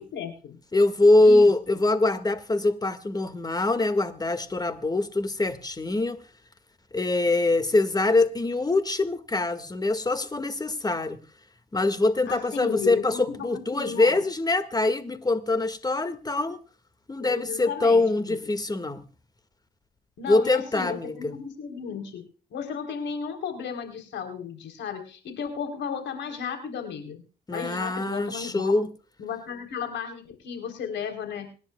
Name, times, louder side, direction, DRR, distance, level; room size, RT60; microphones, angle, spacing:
voice 1, 0.0-0.6 1.2-1.5 12.3-14.2 17.2-18.4 20.2-22.2 22.5-27.2 27.5-28.7 29.2-31.5, left 7 dB, 80° left, 3.7 m, -34 dB
voice 2, 0.7-6.2 6.9-11.2 11.7-16.6 17.1-19.0 20.3-21.3 27.5-28.9, left 2 dB, 20° left, 1.9 m, -23 dB
26.0 x 10.5 x 2.3 m
cardioid pair, 75°, 18 cm